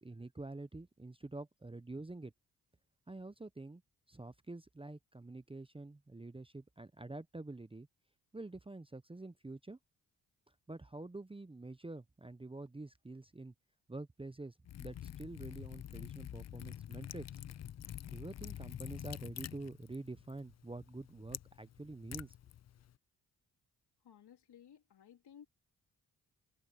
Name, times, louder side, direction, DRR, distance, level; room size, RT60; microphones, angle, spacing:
voice 1, 0.0-2.3 3.1-3.8 4.1-7.9 8.3-9.8 10.7-13.5 13.9-17.3 18.1-22.3, right 2 dB, 15° right, 0.8 m, -47 dB
Liquid, 14.6-22.9, left 10 dB, 45° left, 0.5 m, -47 dB
voice 2, 24.0-25.5, left 9 dB, 80° left, 3.6 m, -58 dB
cardioid pair, 60°, 40 cm